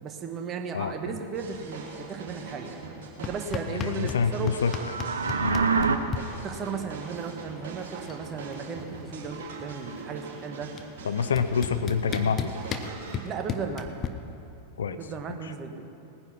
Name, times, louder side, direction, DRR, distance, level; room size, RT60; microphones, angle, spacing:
voice 1, 0.0-2.9 3.2-4.5 6.4-10.7 12.0-12.1 13.2-14.0 15.0-15.8, right 5 dB, 30° right, 4 dB, 1.4 m, -35 dB
voice 2, 0.7-1.2 3.7-4.7 5.4-5.7 11.0-12.5 14.8-15.0 15.3-15.4, left 6 dB, 65° left, 10 dB, 0.7 m, -27 dB
sound 1, 1.3-13.2, right 4 dB, 55° right, 3.1 m, -42 dB
sound 2, 3.2-4.2 4.5-6.2 7.5-7.6 7.8-8.3 8.5-9.9 10.8-10.9 11.4-14.1, left 7 dB, 30° left, 0.9 m, -34 dB
sound 3, 4.6-6.0, right 5 dB, 75° right, 0.7 m, -25 dB
19.0 x 9.8 x 6.0 m, 2.7 s
figure-of-eight pair, 90°, 0 cm